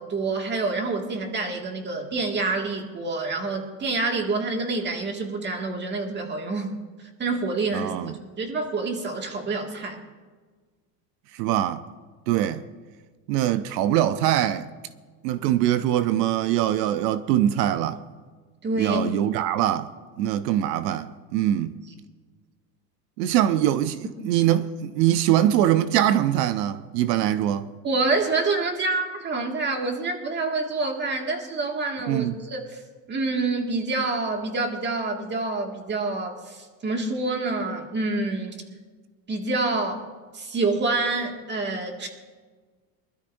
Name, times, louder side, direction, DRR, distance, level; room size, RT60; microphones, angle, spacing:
voice 1, 0.0-6.8 7.2-7.9 8.4-10.0 18.6-19.0 27.8-32.8 33.1-38.6 39.3-40.0 40.3-42.1, right 3 dB, 20° right, 2.1 m, -27 dB
voice 2, 7.7-8.1 11.3-11.8 12.3-12.6 13.3-14.7 15.2-18.0 18.8-19.9 20.2-21.8 23.2-27.7 32.1-32.4, right 12 dB, 85° right, 0.8 m, -23 dB
24.5 x 13.0 x 2.7 m
supercardioid pair, 135°, 48 cm